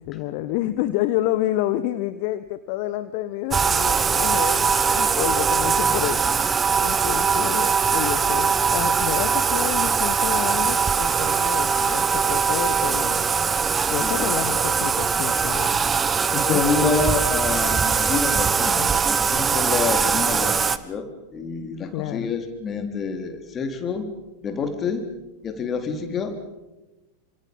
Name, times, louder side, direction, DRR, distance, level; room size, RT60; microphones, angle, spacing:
voice 1, 0.0-6.2 6.8-13.2 13.9-15.8 16.5-16.9 21.9-22.3, left 15 dB, 45° left, 12 dB, 1.1 m, -29 dB
Bathtub (filling or washing), 3.5-20.8, right 6 dB, 20° right, 1.2 m, -21 dB
sound 1, 5.9-6.8 8.8-9.7, right 3 dB, 40° right, 5.0 m, -42 dB
voice 2, 14.0-14.3 16.3-24.1 24.4-25.0 25.4-26.4, left 5 dB, 25° left, 6 dB, 3.8 m, -27 dB
28.5 x 26.5 x 5.5 m, 1.1 s
figure-of-eight pair, 90°, 0 cm